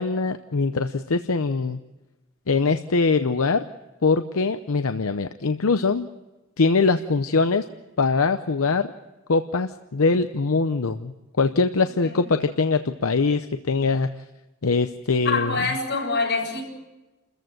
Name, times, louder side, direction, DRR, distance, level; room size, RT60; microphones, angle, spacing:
voice 1, 0.0-1.8 2.5-3.6 4.0-6.1 6.6-7.6 8.0-8.9 9.3-14.1 14.6-15.7, left 4 dB, 80° left, 9 dB, 0.7 m, -22 dB
voice 2, 15.2-16.6, left 3 dB, 55° left, 0 dB, 7.2 m, -25 dB
29.0 x 14.5 x 7.8 m, 1.1 s
head